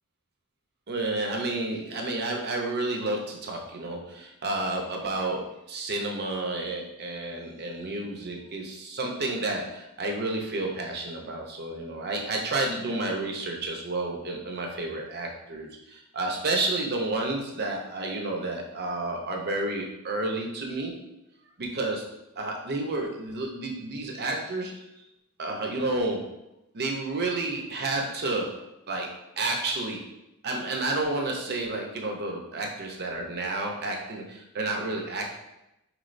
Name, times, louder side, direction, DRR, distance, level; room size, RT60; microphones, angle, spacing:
voice 1, 0.9-21.0 21.6-22.0 22.4-24.7 25.4-26.3 26.7-28.5 28.9-30.0 30.4-35.3, right 2 dB, 45° right, 1 dB, 0.6 m, -30 dB
4.5 x 3.1 x 2.5 m, 0.91 s
head